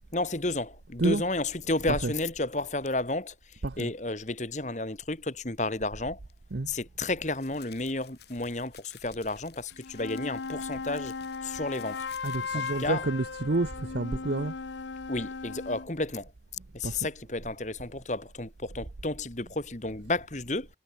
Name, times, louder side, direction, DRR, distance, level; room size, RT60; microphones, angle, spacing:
voice 1, 0.1-6.2 6.7-11.1 11.4-12.1 12.5-13.0 15.1-16.3 16.7-20.7, left 2 dB, 40° left, 1.9 m, -32 dB
sound 1, 2.8-3.1 6.2-12.8, left 10 dB, 70° left, 4.7 m, -55 dB
sound 2, 9.7-15.9, left 5 dB, 85° left, 0.8 m, -37 dB
voice 2, 12.2-14.6 16.8-17.1, right 2 dB, 70° right, 0.8 m, -29 dB
head